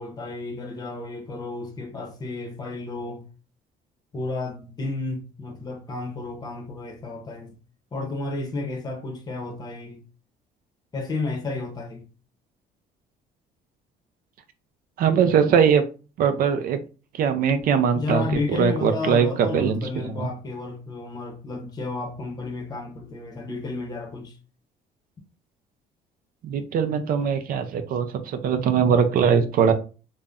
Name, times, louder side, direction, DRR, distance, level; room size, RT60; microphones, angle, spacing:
voice 1, 0.0-3.3 4.1-7.6 7.9-10.1 10.9-12.1 17.9-24.4, left 3 dB, 25° left, 0.7 m, -32 dB
voice 2, 15.0-15.8 16.2-16.8 17.2-19.3 19.5-20.3 26.4-29.7, right 7 dB, 60° right, 0.4 m, -21 dB
2.5 x 2.1 x 3.4 m
cardioid pair, 110°, 17 cm